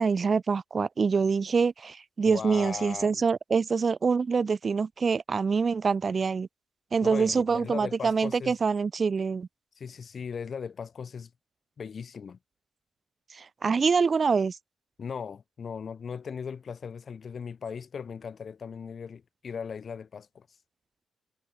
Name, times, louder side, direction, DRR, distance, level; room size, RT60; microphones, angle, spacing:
voice 1, 0.0-6.5 6.9-9.5 13.3-14.6, right 5 dB, 50° right, 2.0 m, -25 dB
voice 2, 2.3-3.2 7.0-8.6 9.8-11.3 11.8-12.4 15.0-20.5, left 6 dB, 55° left, 2.1 m, -38 dB
supercardioid pair, 50°, 0 cm